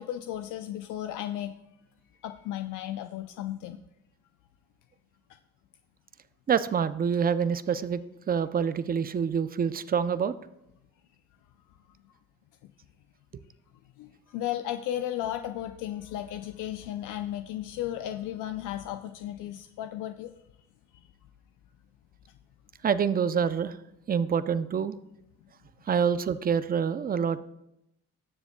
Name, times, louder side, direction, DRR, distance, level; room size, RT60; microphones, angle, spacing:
voice 1, 0.0-1.6 2.2-3.8 14.0-20.3, left 12 dB, 85° left, 7 dB, 0.5 m, -34 dB
voice 2, 6.5-8.0 8.3-10.3 22.8-23.8 24.1-24.9 25.9-27.4, right 7 dB, 30° right, 14 dB, 0.5 m, -26 dB
19.5 x 7.0 x 2.2 m, 0.85 s
cardioid pair, 90°, 30 cm